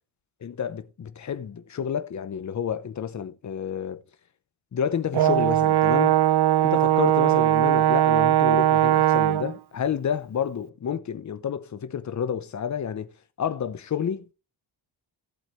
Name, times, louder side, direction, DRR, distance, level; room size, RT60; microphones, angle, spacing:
voice 1, 0.4-4.0 4.7-6.2 6.6-13.1 13.4-14.3, left 8 dB, 35° left, 0.9 m, -30 dB
Brass instrument, 5.1-9.5, right 12 dB, 55° right, 0.7 m, -20 dB
16.0 x 8.0 x 3.2 m
wide cardioid pair, 170°, 47 cm